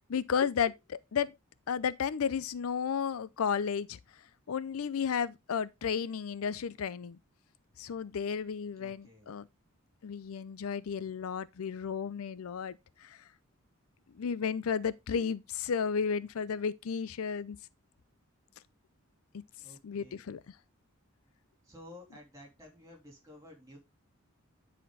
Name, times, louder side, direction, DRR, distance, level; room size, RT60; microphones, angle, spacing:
voice 1, 0.1-1.3 1.7-4.0 4.5-7.2 7.8-9.4 10.0-13.2 14.1-17.6 19.8-20.4, left 6 dB, 80° left, 0.5 m, -33 dB
voice 2, 8.8-9.4 19.6-20.3 21.6-23.8, left 1 dB, 15° right, 3.0 m, -53 dB
10.0 x 4.3 x 3.9 m
head